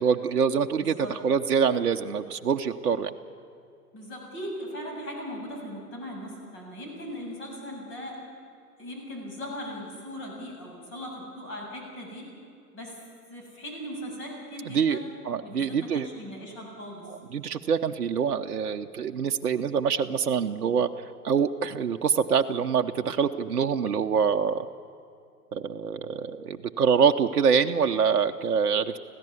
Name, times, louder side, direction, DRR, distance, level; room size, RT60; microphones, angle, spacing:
voice 1, 0.0-3.1 14.7-16.1 17.0-20.9 21.2-24.7 25.5-29.0, right 6 dB, 65° right, 5 dB, 1.0 m, -25 dB
voice 2, 0.8-1.2 3.9-8.2 8.8-12.3 12.7-13.0 13.3-15.1 15.4-17.1, equal, 25° left, -1 dB, 7.0 m, -39 dB
25.5 x 16.5 x 7.1 m, 2.5 s
figure-of-eight pair, 115°, 48 cm